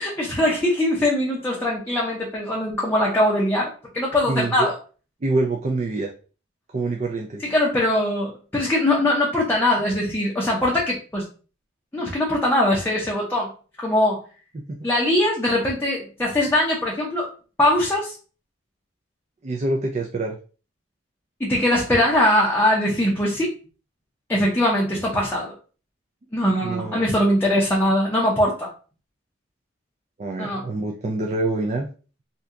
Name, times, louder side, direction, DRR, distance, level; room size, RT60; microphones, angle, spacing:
voice 1, 0.0-4.7 7.5-11.3 11.9-13.5 13.8-14.2 14.8-17.3 17.6-18.1 21.4-23.5 24.3-25.5 26.3-28.7 30.4-30.6, left 1 dB, 10° left, -4 dB, 0.6 m, -21 dB
voice 2, 4.3-4.7 5.2-6.1 6.7-7.4 14.5-14.8 19.4-20.4 26.6-27.1 30.2-31.9, right 2 dB, 35° right, 1 dB, 0.4 m, -26 dB
2.7 x 2.2 x 3.5 m, 0.37 s
head